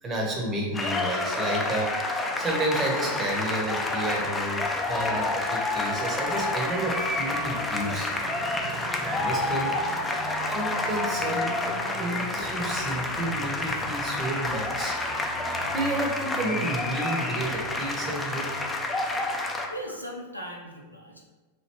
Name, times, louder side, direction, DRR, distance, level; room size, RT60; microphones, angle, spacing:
voice 1, 0.0-1.9 2.4-8.1 9.0-9.8 10.4-11.5 12.0-15.0 15.4-18.5, right 1 dB, 20° right, -1 dB, 0.8 m, -31 dB
sound 1, 0.7-19.7, left 2 dB, 15° left, 0.4 m, -29 dB
Motorcycle, 1.9-19.8, right 2 dB, 50° right, 0.9 m, -43 dB
voice 2, 19.3-21.3, equal, 85° left, -1 dB, 0.4 m, -39 dB
3.1 x 2.7 x 2.9 m, 1.2 s
figure-of-eight pair, 90°, 0 cm